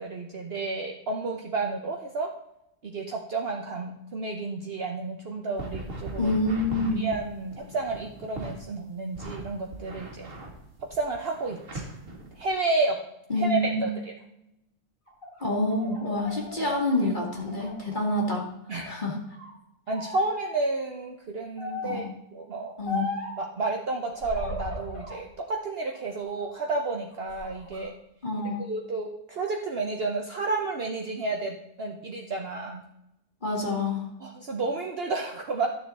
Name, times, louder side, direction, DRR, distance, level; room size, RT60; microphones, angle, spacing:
voice 1, 0.0-2.3 2.8-6.3 7.0-10.3 10.9-11.8 12.4-13.0 13.4-13.9 18.7-19.0 19.9-22.7 23.4-27.9 28.7-32.8 34.2-35.7, right 3 dB, 50° right, 1 dB, 1.1 m, -31 dB
sound 1, 5.6-8.6 9.1-12.5, right 2 dB, 75° right, 2.2 m, -39 dB
voice 2, 6.2-7.1 13.3-13.9 15.4-18.5 18.9-19.2 21.8-22.1 22.8-23.1 28.2-28.7 33.4-34.1, left 2 dB, 40° left, -1 dB, 1.9 m, -27 dB
sound 2, 15.1-18.3 18.7-19.5 19.9-20.6 21.6-22.1 22.9-23.4 24.1-25.2 25.7-26.6 27.1-27.8, left 1 dB, 90° left, 4.2 m, -37 dB
11.5 x 6.9 x 4.1 m, 0.85 s
omnidirectional pair, 1.4 m